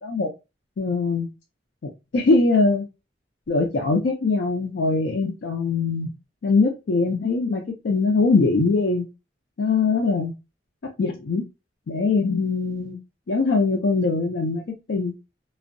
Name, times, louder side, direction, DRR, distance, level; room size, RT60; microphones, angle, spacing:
voice 1, 0.8-1.3 1.8-2.9 3.5-6.1 6.4-9.1 9.6-10.3 11.0-11.4 11.9-13.0 13.3-15.1, left 3 dB, 70° left, 1 dB, 0.4 m, -22 dB
2.5 x 2.1 x 2.5 m, 0.26 s
head